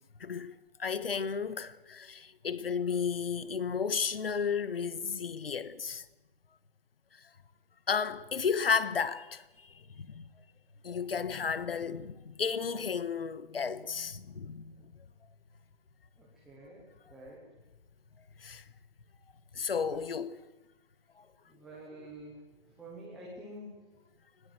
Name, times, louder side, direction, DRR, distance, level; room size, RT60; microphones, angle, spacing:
voice 1, 0.2-0.5 0.8-6.0 7.9-9.4 10.0-10.2 10.8-14.6 18.4-18.6 19.5-20.4, left 6 dB, 70° left, 1.6 m, -33 dB
voice 2, 16.2-17.4 21.5-23.9, right 1 dB, ahead, 0.8 m, -48 dB
20.5 x 19.5 x 7.9 m
hypercardioid pair, 175°, 30 cm